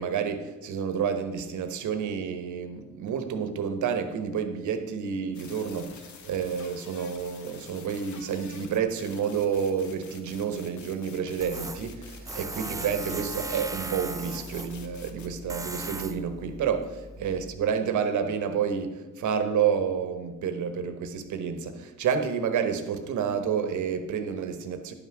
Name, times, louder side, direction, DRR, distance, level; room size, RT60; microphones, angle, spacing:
voice 1, 0.0-16.9 17.2-24.9, right 7 dB, 75° right, 1.2 m, -29 dB
sound 1, 5.3-15.3, left 6 dB, 70° left, 1.2 m, -49 dB
Tools, 11.4-17.6, right 2 dB, 10° right, 0.5 m, -38 dB
10.5 x 6.0 x 6.1 m
cardioid pair, 90°, 30 cm